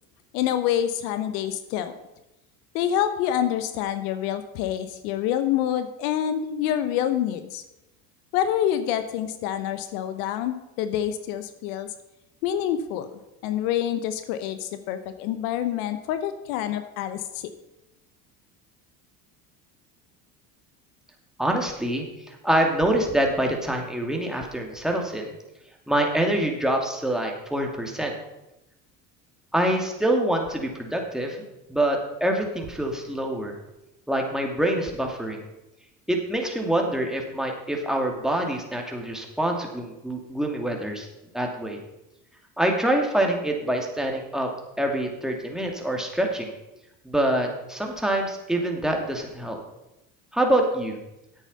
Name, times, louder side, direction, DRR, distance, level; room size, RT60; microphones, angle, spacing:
voice 1, 0.3-1.9 2.7-7.6 8.3-11.9 12.4-17.5, left 10 dB, 70° left, 10 dB, 1.0 m, -27 dB
voice 2, 21.4-25.3 25.9-28.1 29.5-31.4 31.7-33.6 34.1-35.4 36.1-41.1 41.3-41.8 42.6-44.5 44.8-46.5 47.0-49.6 50.3-51.0, right 1 dB, ahead, 1 dB, 2.5 m, -25 dB
10.5 x 8.3 x 5.5 m, 0.93 s
hypercardioid pair, 75°, 48 cm